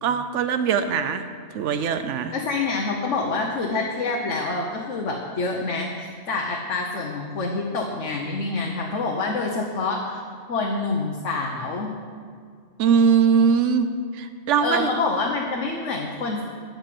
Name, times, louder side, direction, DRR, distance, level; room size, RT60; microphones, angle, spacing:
voice 1, 0.0-1.2 1.5-2.3 12.8-14.9, right 6 dB, 90° right, 9 dB, 1.0 m, -21 dB
voice 2, 2.3-10.2 10.5-11.9 14.6-16.4, left 3 dB, 90° left, 0 dB, 1.3 m, -27 dB
12.5 x 5.3 x 7.7 m, 2.1 s
omnidirectional pair, 1.2 m